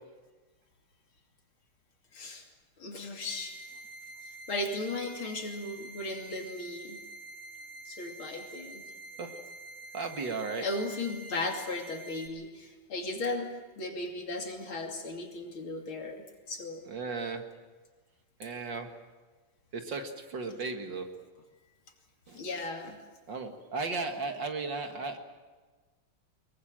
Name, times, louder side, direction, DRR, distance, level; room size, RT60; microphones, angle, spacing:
voice 1, 2.1-2.5 2.8-3.7 4.2-7.1 7.9-8.9 10.6-16.9 22.3-23.0, left 2 dB, 65° left, 2 dB, 3.5 m, -36 dB
sound 1, 3.3-12.3, right 2 dB, 15° left, 3.5 m, -47 dB
voice 2, 9.9-10.7 16.9-17.4 18.4-18.9 19.7-21.1 22.3-22.4 23.3-25.2, right 4 dB, 55° right, 5 dB, 2.4 m, -35 dB
23.5 x 22.0 x 7.7 m, 1.3 s
omnidirectional pair, 2.4 m